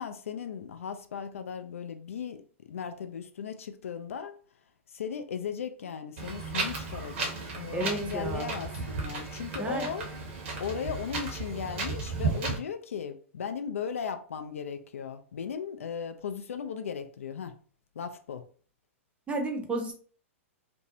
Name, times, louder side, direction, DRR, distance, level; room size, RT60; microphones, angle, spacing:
voice 1, 0.0-4.4 4.9-10.1 10.6-17.5 18.0-18.4, left 7 dB, 75° left, 0.3 m, -37 dB
Wind, 6.2-12.6, right 4 dB, 60° right, 0.8 m, -34 dB
voice 2, 7.7-8.5 9.6-9.9 19.3-19.9, right 2 dB, 15° right, 0.6 m, -32 dB
2.6 x 2.0 x 2.6 m
hypercardioid pair, 105°, 7 cm